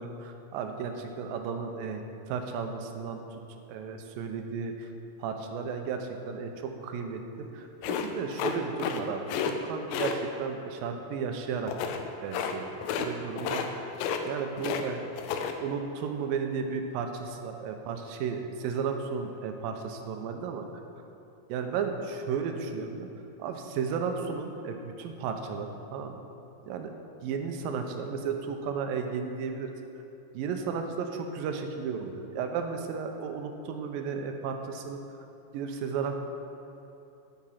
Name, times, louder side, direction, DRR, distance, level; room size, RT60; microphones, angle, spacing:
voice 1, 0.0-3.4 3.7-4.9 5.2-7.2 7.5-11.7 12.2-14.0 14.2-15.1 15.6-20.6 21.5-23.1 23.4-26.2 26.6-26.9 27.2-29.8 30.3-35.0 35.5-36.2, right 6 dB, 90° right, 5 dB, 2.6 m, -34 dB
sound 1, 7.8-9.0 9.3-9.5 9.9-10.2 11.7-12.0 12.3-12.5 12.8-13.1 13.4-13.7 13.9-14.8 15.1-15.5, left 7 dB, 85° left, 2.4 m, -31 dB
9.6 x 8.8 x 5.8 m, 2.9 s
omnidirectional pair, 4.0 m